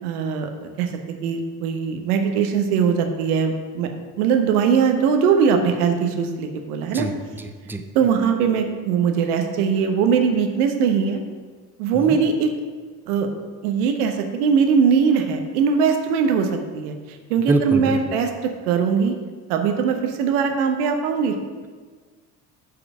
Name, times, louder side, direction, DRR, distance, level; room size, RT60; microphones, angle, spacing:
voice 1, 0.0-3.9 4.2-7.1 7.9-11.2 11.8-12.5 13.1-13.3 13.6-18.3 18.6-19.2 19.5-21.4, right 6 dB, 70° right, 5 dB, 1.1 m, -21 dB
voice 2, 6.9-7.8 11.9-12.2 17.5-18.0, right 2 dB, 5° right, 7 dB, 0.6 m, -25 dB
8.1 x 4.9 x 6.2 m, 1.5 s
figure-of-eight pair, 55°, 47 cm